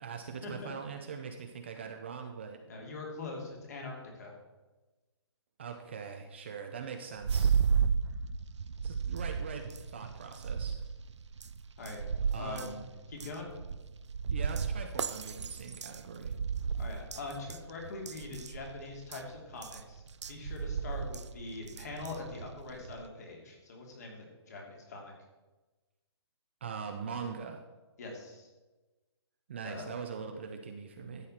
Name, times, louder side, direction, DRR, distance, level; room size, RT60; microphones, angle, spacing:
voice 1, 0.0-2.6 5.6-7.6 8.8-10.8 12.3-12.9 14.3-16.3 26.6-27.6 29.5-31.3, right 6 dB, 25° right, 4 dB, 0.6 m, -42 dB
voice 2, 2.7-4.4 11.8-12.0 12.4-12.7 13.1-13.5 16.7-20.0 20.3-25.1 28.0-28.5 29.6-29.9, left 3 dB, 35° left, 1 dB, 2.5 m, -43 dB
sound 1, 7.2-23.1, right 6 dB, 85° right, 0.7 m, -34 dB
13.0 x 8.2 x 4.3 m, 1.2 s
hypercardioid pair, 175°, 14 cm